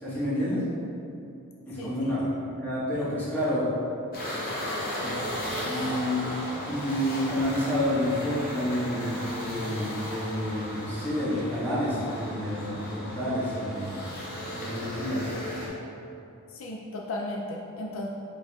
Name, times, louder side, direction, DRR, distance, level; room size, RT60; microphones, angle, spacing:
voice 1, 0.0-0.6 1.7-3.7 5.0-6.3 6.6-14.0 14.5-15.3, equal, 10° left, -11 dB, 1.3 m, -29 dB
voice 2, 1.8-2.1 16.5-18.1, left 1 dB, 65° left, 0 dB, 0.4 m, -35 dB
sound 1, 4.1-15.7, equal, 45° left, 0.8 m, -35 dB
5.0 x 4.6 x 2.3 m, 2.7 s
head